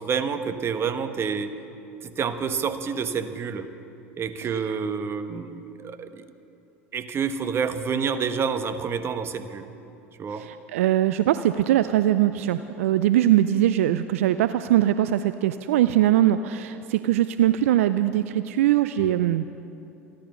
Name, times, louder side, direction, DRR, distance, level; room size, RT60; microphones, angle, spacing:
voice 1, 0.0-1.6 2.0-3.7 4.2-6.3 6.9-9.7 10.2-10.5 19.0-19.1, right 6 dB, 35° right, 9 dB, 1.1 m, -28 dB
voice 2, 4.4-4.8 10.3-19.5, right 12 dB, 70° right, 12 dB, 0.4 m, -22 dB
28.0 x 11.5 x 3.8 m, 2.8 s
hypercardioid pair, 80°, 8 cm